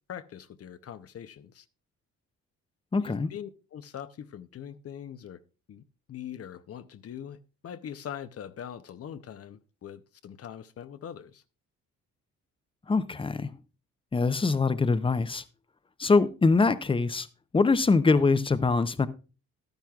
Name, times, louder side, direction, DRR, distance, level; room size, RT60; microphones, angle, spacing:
voice 1, 0.1-1.6 3.0-5.4 5.7-5.8 6.1-7.4 7.6-11.4, left 9 dB, 50° left, 0.7 m, -42 dB
voice 2, 2.9-3.3 12.9-13.5 14.1-15.4 16.0-17.3 17.5-19.1, left 4 dB, 15° left, 0.6 m, -23 dB
11.5 x 10.5 x 2.4 m
cardioid pair, 90°, 30 cm